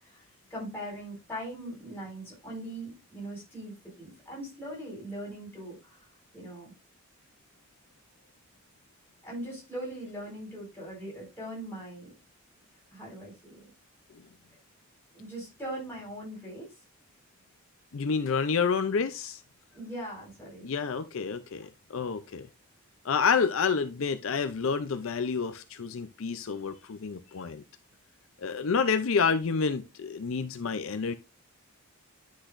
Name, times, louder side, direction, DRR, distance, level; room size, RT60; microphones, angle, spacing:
voice 1, 0.0-6.1 6.3-6.7 9.2-12.1 12.9-13.6 15.1-16.7 19.7-20.6, right 1 dB, 10° left, 4.9 m, -40 dB
voice 2, 17.9-19.4 20.6-22.5 23.0-27.6 28.4-31.1, left 5 dB, 65° left, 0.5 m, -29 dB
9.9 x 6.3 x 2.5 m
head